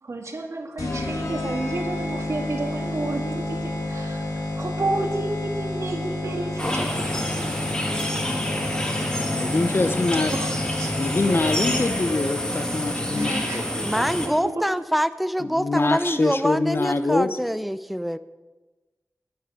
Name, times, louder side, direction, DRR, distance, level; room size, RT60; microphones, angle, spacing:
voice 1, 0.0-7.9 10.1-11.0 11.3-11.4 13.2-14.7 15.9-16.3, right 2 dB, 60° right, 2 dB, 1.8 m, -32 dB
sound 1, 0.8-12.2, left 2 dB, 75° left, 2.1 m, -30 dB
sound 2, 6.6-14.3, equal, 15° left, 2.3 m, -28 dB
voice 2, 9.0-10.3 11.0-13.6 15.4-17.3, left 3 dB, 45° left, 10 dB, 0.9 m, -24 dB
voice 3, 13.8-18.2, equal, ahead, 13 dB, 0.5 m, -25 dB
9.4 x 9.4 x 7.1 m, 1.2 s
wide cardioid pair, 75°, 6 cm